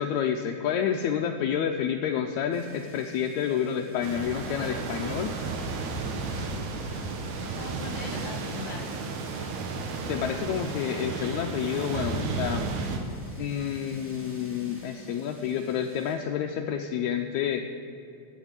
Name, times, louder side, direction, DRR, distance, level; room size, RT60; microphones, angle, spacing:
voice 1, 0.0-5.3 10.1-12.7 13.4-17.7, left 8 dB, 75° left, 4 dB, 1.9 m, -29 dB
sound 1, 2.5-16.2, equal, 5° right, 2.1 m, -48 dB
sound 2, 4.0-13.0, right 4 dB, 70° right, 2.4 m, -33 dB
voice 2, 5.0-5.7 6.4-6.5 7.1-9.0, left 3 dB, 30° left, 2 dB, 2.3 m, -42 dB
17.0 x 6.2 x 8.8 m, 2.8 s
omnidirectional pair, 3.5 m